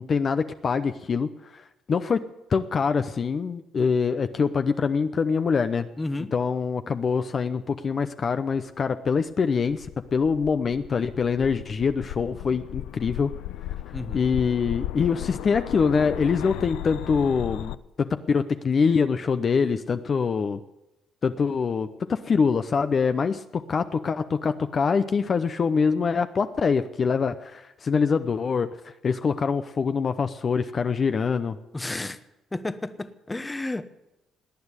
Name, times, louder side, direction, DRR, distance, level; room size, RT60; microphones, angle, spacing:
voice 1, 0.0-1.6 1.9-5.9 6.3-13.3 14.1-20.6 21.2-31.6, left 5 dB, 45° left, 0.8 m, -24 dB
voice 2, 6.0-6.3 13.9-14.2 31.7-32.2 32.5-33.9, left 2 dB, 15° left, 1.0 m, -32 dB
sound 1, 9.5-17.7, left 14 dB, 85° left, 0.5 m, -36 dB
18.5 x 9.5 x 8.2 m
cardioid pair, 85°, 0 cm